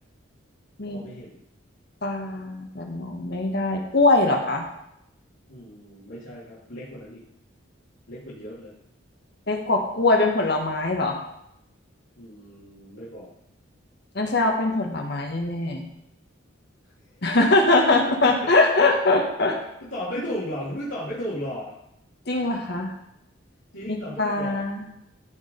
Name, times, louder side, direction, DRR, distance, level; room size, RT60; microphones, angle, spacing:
voice 1, 0.8-1.4 5.5-7.2 8.1-8.7 12.2-13.3 19.6-21.7 23.7-24.6, equal, 70° left, -9 dB, 2.5 m, -35 dB
voice 2, 2.0-4.6 9.5-11.2 14.1-15.9 17.2-19.6 22.3-22.9 23.9-24.8, left 2 dB, 55° left, 3 dB, 1.4 m, -22 dB
14.0 x 4.8 x 5.3 m, 0.80 s
head